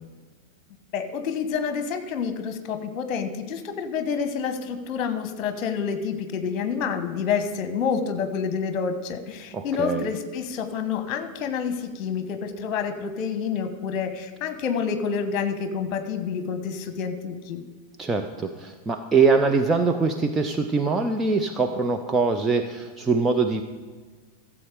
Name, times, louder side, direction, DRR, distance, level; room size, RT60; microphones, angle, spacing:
voice 1, 0.9-17.6, left 6 dB, 35° left, 9 dB, 1.2 m, -28 dB
voice 2, 9.5-10.1 18.0-23.6, right 4 dB, 15° right, 5 dB, 0.7 m, -23 dB
15.0 x 7.2 x 5.0 m, 1.4 s
figure-of-eight pair, 90°, 0 cm